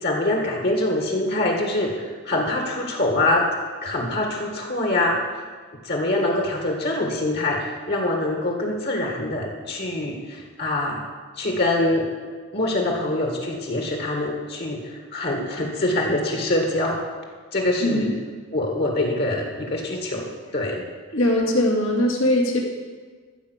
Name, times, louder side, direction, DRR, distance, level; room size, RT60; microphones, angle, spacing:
voice 1, 0.0-3.4 3.8-5.4 5.8-11.0 11.4-12.1 12.5-17.0 17.5-18.1 18.5-20.8, left 1 dB, 50° left, 1 dB, 1.8 m, -24 dB
voice 2, 21.1-22.6, left 1 dB, 75° left, -1 dB, 2.3 m, -20 dB
14.0 x 5.1 x 8.1 m, 1.5 s
head